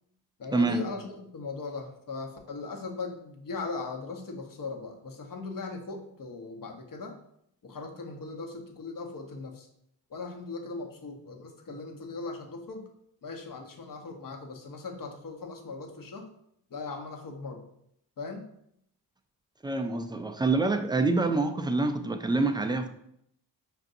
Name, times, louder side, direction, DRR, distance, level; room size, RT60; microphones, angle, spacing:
voice 1, 0.4-7.2 7.6-9.7 10.1-12.9 13.2-16.3 16.7-17.6 18.2-18.5, left 3 dB, 45° left, 2 dB, 0.9 m, -39 dB
voice 2, 19.6-22.9, right 3 dB, 10° right, 7 dB, 0.3 m, -26 dB
5.4 x 2.5 x 2.6 m, 0.73 s
supercardioid pair, 45°, 45 cm